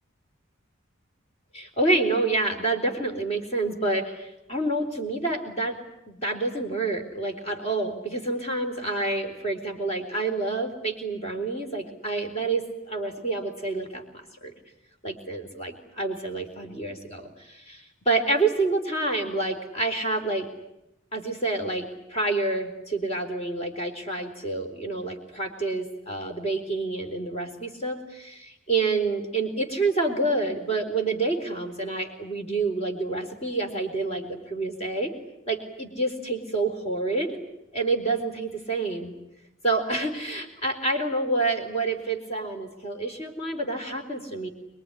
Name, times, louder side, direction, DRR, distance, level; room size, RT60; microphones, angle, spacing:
voice 1, 1.5-5.8 6.1-14.5 15.0-20.5 21.1-35.1 35.5-37.4 37.7-39.2 39.6-44.5, right 2 dB, 30° left, 4 dB, 4.1 m, -28 dB
24.5 x 22.5 x 10.0 m, 0.88 s
head